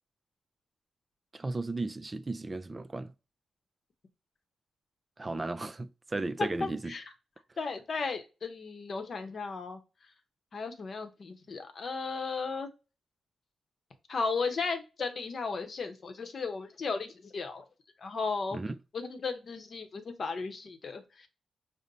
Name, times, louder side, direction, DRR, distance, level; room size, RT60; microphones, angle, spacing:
voice 1, 1.3-3.1 5.2-7.0 18.5-18.8, right 2 dB, 25° right, 0.3 m, -35 dB
voice 2, 6.4-7.0 7.6-9.8 10.5-12.7 14.1-17.6 18.0-18.6 18.9-21.3, left 4 dB, 50° left, 0.8 m, -35 dB
5.3 x 2.1 x 3.9 m
cardioid pair, 80°, 0 cm